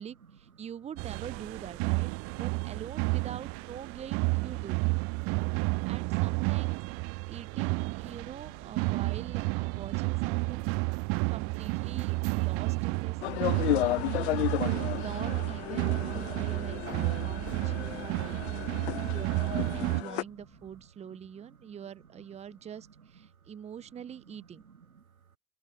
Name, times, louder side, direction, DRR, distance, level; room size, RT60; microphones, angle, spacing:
voice 1, 0.0-2.1 2.4-4.8 5.9-6.8 7.3-10.7 11.3-13.7 14.1-14.5 14.9-18.8 19.1-24.6, right 8 dB, 15° right, 1.1 m, -44 dB
sound 1, 1.0-20.0, right 30 dB, 35° right, 0.9 m, -31 dB
sound 2, 5.6-20.9, left 1 dB, ahead, 2.6 m, -60 dB
voice 2, 8.2-8.5 8.8-8.9 13.2-13.3 13.7-14.1 14.5-14.8 17.3-17.4 19.9-20.2 21.1-21.2 24.6-25.0, right 6 dB, 80° right, 1.2 m, -57 dB
sound 3, 13.2-20.2, left 16 dB, 50° left, 0.6 m, -33 dB
figure-of-eight pair, 95°, 42 cm